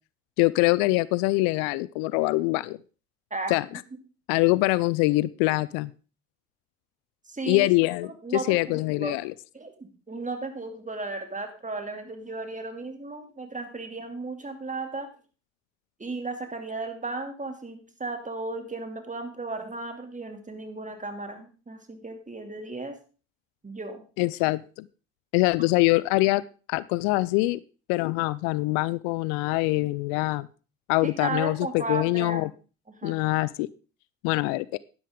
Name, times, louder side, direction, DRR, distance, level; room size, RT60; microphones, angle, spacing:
voice 1, 0.4-2.8 3.5-3.8 4.3-5.9 7.5-9.3 24.2-24.9 25.3-26.4 26.7-27.6 27.9-30.5 30.9-32.5 33.0-33.7 34.2-34.8, left 21 dB, 70° left, 20 dB, 0.5 m, -24 dB
voice 2, 7.3-7.7 8.0-9.2 9.5-15.1 16.0-23.0 23.6-24.0 31.0-32.5 32.9-33.2, right 3 dB, 20° right, 5 dB, 2.7 m, -35 dB
11.5 x 10.0 x 3.7 m, 0.35 s
hypercardioid pair, 55°, 37 cm